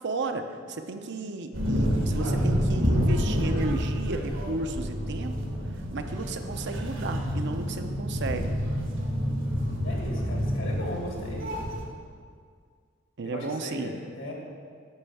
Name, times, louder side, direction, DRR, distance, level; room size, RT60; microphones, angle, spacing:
voice 1, 0.0-5.4 5.9-8.5 13.2-13.9, right 3 dB, 60° right, 7 dB, 0.6 m, -33 dB
sound 1, 1.5-11.8, equal, 75° right, 1.6 m, -28 dB
voice 2, 9.8-11.4 13.2-14.3, left 1 dB, 80° left, -1 dB, 2.1 m, -37 dB
8.6 x 5.5 x 7.1 m, 2.1 s
head